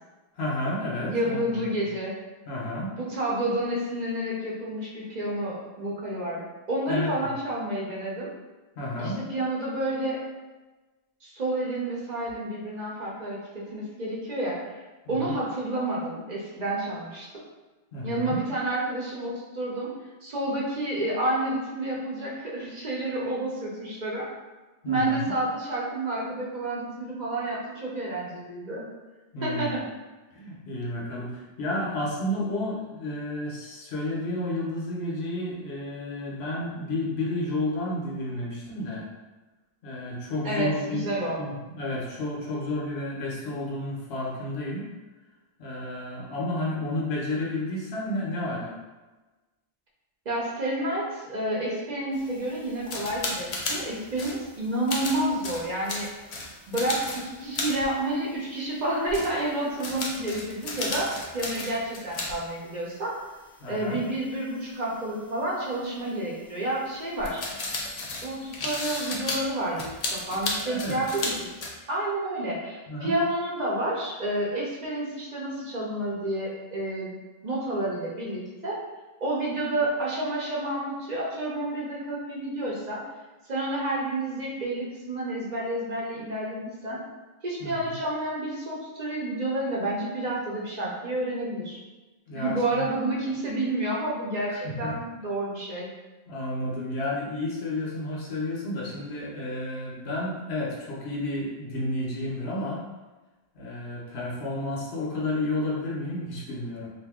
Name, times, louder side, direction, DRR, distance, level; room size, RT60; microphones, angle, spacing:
voice 1, 0.4-1.8 2.5-3.0 6.9-7.3 8.8-9.2 15.1-15.3 17.9-18.4 24.8-25.2 29.3-29.8 30.3-39.1 39.8-44.9 45.6-48.7 63.6-64.0 70.6-71.0 72.9-73.1 87.6-87.9 92.3-92.8 94.5-95.0 96.3-102.8 103.5-106.9, left 1 dB, 80° left, -4 dB, 1.1 m, -31 dB
voice 2, 1.1-2.1 3.0-8.3 9.0-10.2 11.2-14.7 15.1-17.3 18.0-19.9 20.2-24.3 24.9-28.8 29.4-29.8 40.4-41.4 50.3-56.1 56.7-63.1 63.7-67.4 68.2-69.9 70.1-71.6 71.9-77.1 77.4-78.8 79.2-83.0 83.5-87.0 87.4-91.8 92.3-95.9, right 1 dB, 45° right, -5 dB, 0.8 m, -30 dB
sound 1, 52.1-58.8 59.1-62.3 62.6-62.7 64.5-64.6 67.2-71.7, left 2 dB, 50° left, 0.5 m, -34 dB
2.6 x 2.6 x 3.5 m, 1.2 s
omnidirectional pair, 1.1 m